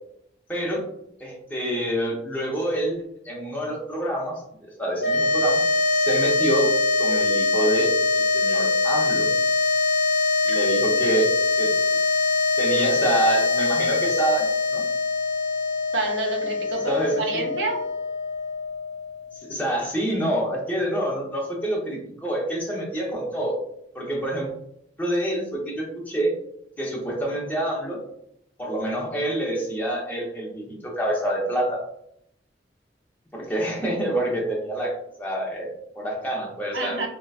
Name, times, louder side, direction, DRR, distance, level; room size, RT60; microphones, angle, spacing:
voice 1, 0.5-0.8 1.2-3.0 3.2-4.4 4.8-5.6 5.9-6.7 7.0-9.3 10.5-11.3 11.6-11.7 12.6-14.4 14.7-14.8 16.9-17.1 19.5-23.6 23.9-24.5 25.0-26.3 26.8-28.0 28.6-31.8 33.3-34.9 35.2-37.1, right 1 dB, 10° left, -3 dB, 0.8 m, -27 dB
sound 1, 5.0-19.4, left 3 dB, 75° left, 0.6 m, -23 dB
voice 2, 15.9-17.8 36.7-37.1, right 3 dB, 85° right, 1 dB, 0.7 m, -29 dB
3.8 x 2.1 x 2.4 m, 0.75 s
head